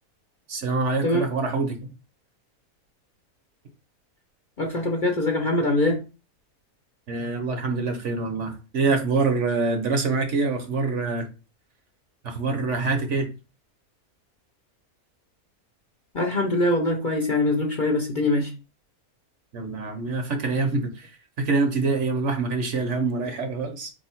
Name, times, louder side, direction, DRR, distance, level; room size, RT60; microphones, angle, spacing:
voice 1, 0.5-1.8 7.1-11.3 12.2-13.3 19.5-21.1 21.4-23.9, right 3 dB, 60° right, 5 dB, 1.1 m, -25 dB
voice 2, 4.6-6.0 16.1-18.5, left 2 dB, 45° left, 1 dB, 0.7 m, -23 dB
4.4 x 2.8 x 4.4 m, 0.32 s
omnidirectional pair, 1.5 m